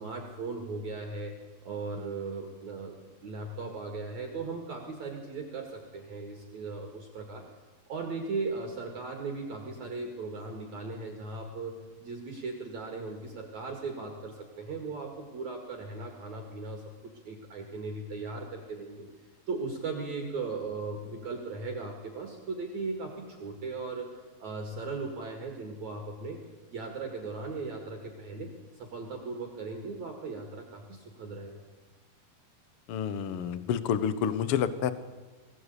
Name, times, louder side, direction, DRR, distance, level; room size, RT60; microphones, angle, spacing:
voice 1, 0.0-1.3 1.6-2.9 3.2-7.5 7.9-11.7 12.0-19.1 19.5-26.4 26.7-31.6, right 3 dB, 55° right, 2 dB, 3.2 m, -38 dB
voice 2, 32.9-34.9, left 8 dB, 90° left, 13 dB, 1.2 m, -29 dB
22.0 x 16.5 x 8.4 m, 1.4 s
omnidirectional pair, 4.2 m